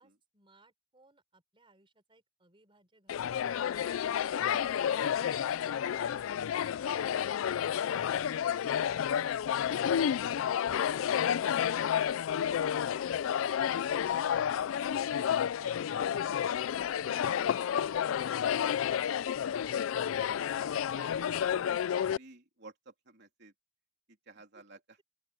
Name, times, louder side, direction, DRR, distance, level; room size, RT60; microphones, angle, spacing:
voice 1, 0.0-3.9 4.8-7.4 7.9-11.0 11.5-14.4 24.5-24.6, right 2 dB, 25° right, 4.4 m, -65 dB
sound 1, 3.1-22.2, left 9 dB, 85° left, 0.3 m, -30 dB
voice 2, 14.9-15.3 15.6-18.4 19.4-23.5 24.1-25.0, right 3 dB, 55° right, 3.3 m, -55 dB
open air
head